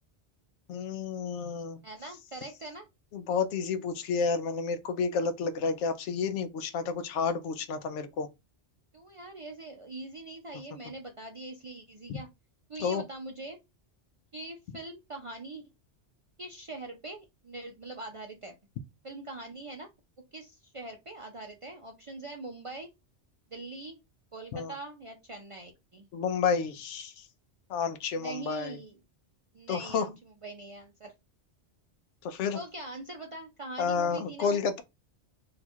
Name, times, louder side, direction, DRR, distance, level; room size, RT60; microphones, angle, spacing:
voice 1, 0.7-1.8 3.1-8.3 12.1-12.2 12.8-13.0 24.5-24.7 26.1-27.2 27.7-28.8 29.7-30.1 32.2-32.6 33.8-34.8, left 5 dB, 85° left, 0.9 m, -30 dB
voice 2, 1.8-2.9 8.9-12.3 12.7-13.6 14.3-15.6 16.4-18.6 19.0-19.9 20.3-22.9 23.5-24.0 24.3-26.1 28.1-29.0 29.5-31.1 32.5-34.8, right 2 dB, 50° right, 0.4 m, -42 dB
2.9 x 2.3 x 4.2 m
omnidirectional pair, 1.2 m